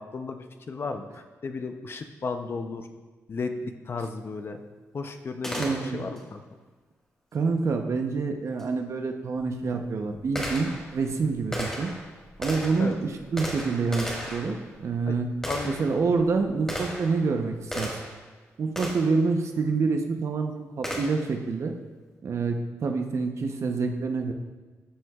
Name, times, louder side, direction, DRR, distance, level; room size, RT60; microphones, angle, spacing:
voice 1, 0.0-2.9 3.3-4.6 4.9-6.4 12.8-13.0 15.1-15.2 15.5-15.8, left 4 dB, 45° left, 7 dB, 0.6 m, -34 dB
Gunshot gunfire, 5.4-6.2 8.6-8.7 9.4-18.3 18.8-19.2 20.8-21.4, equal, 10° left, 1.6 m, -36 dB
voice 2, 5.6-6.1 7.3-11.9 12.4-15.3 15.6-17.9 18.6-21.7 22.2-24.3, right 4 dB, 55° right, 5 dB, 0.8 m, -27 dB
12.5 x 6.2 x 2.4 m, 1.3 s
cardioid pair, 105°, 6 cm